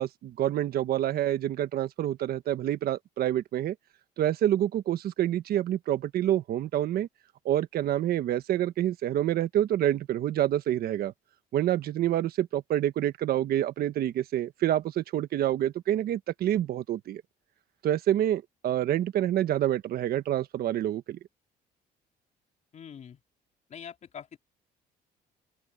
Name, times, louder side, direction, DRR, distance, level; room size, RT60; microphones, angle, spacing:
voice 1, 0.0-3.7 4.2-7.1 7.4-11.1 11.5-17.2 17.8-21.2, right 12 dB, 65° right, 1.3 m, -27 dB
voice 2, 22.7-23.2 23.7-24.4, left 8 dB, 45° left, 3.7 m, -44 dB
open air
cardioid pair, 110°, 17 cm